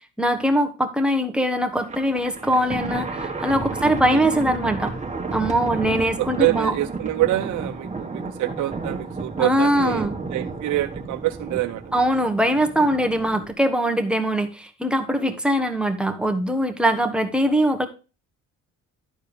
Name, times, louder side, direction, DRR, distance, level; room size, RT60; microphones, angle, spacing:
voice 1, 0.2-4.9 5.3-6.7 9.4-10.1 11.9-17.9, equal, 5° right, 5 dB, 1.3 m, -22 dB
Thunder, 1.7-13.5, right 3 dB, 20° right, 1.8 m, -32 dB
voice 2, 3.8-4.2 5.7-12.0 15.2-15.4, right 16 dB, 80° right, 7 dB, 0.7 m, -26 dB
11.5 x 4.5 x 5.3 m, 0.33 s
cardioid pair, 90°, 30 cm